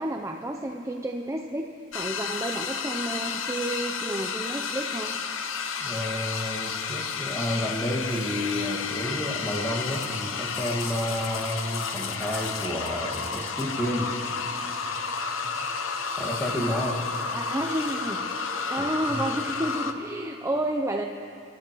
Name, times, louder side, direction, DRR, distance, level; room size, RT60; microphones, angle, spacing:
voice 1, 0.0-1.7 1.9-5.2 17.3-18.2 18.7-21.1, right 1 dB, 15° right, 3 dB, 0.5 m, -30 dB
sound 1, 1.9-19.9, left 5 dB, 80° left, 0.8 m, -31 dB
voice 2, 5.8-14.1 15.4-15.5 16.2-17.0 18.8-19.2, equal, 10° left, -3 dB, 1.7 m, -30 dB
27.0 x 13.5 x 3.0 m, 2.6 s
head